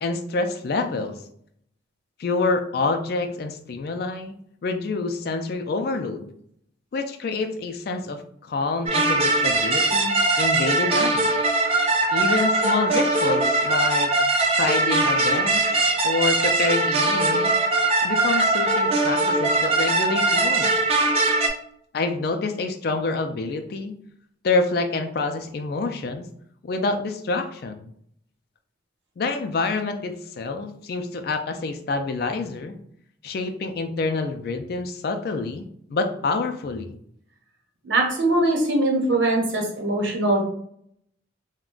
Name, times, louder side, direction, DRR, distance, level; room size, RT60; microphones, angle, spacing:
voice 1, 0.0-1.2 2.2-4.4 4.6-6.3 6.9-11.3 12.1-14.1 14.6-17.5 18.0-20.7 21.9-23.9 24.4-26.3 26.6-27.9 29.2-32.8 33.2-37.0, left 3 dB, 50° left, 6 dB, 0.3 m, -27 dB
sound 1, 8.9-21.5, right 2 dB, 30° right, 0.5 m, -21 dB
voice 2, 37.8-40.4, right 2 dB, 75° right, 0 dB, 0.9 m, -21 dB
2.4 x 2.2 x 3.6 m, 0.67 s
head